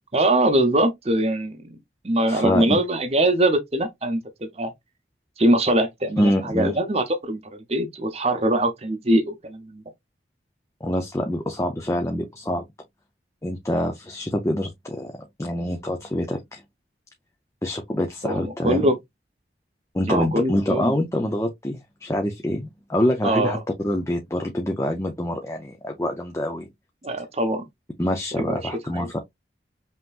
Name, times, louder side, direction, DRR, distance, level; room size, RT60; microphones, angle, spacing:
voice 1, 0.1-1.8 2.0-4.7 5.4-7.4 7.7-9.8 18.2-19.0 20.1-20.9 23.2-23.6 27.0-27.6 28.3-28.6 28.9-29.1, right 1 dB, 35° right, 0.8 m, -22 dB
voice 2, 2.3-2.8 6.2-6.8 10.8-12.6 13.4-15.1 15.4-16.6 17.6-18.9 19.9-23.6 23.8-26.7 28.0-29.2, left 1 dB, 15° left, 0.6 m, -25 dB
5.5 x 2.9 x 2.4 m
head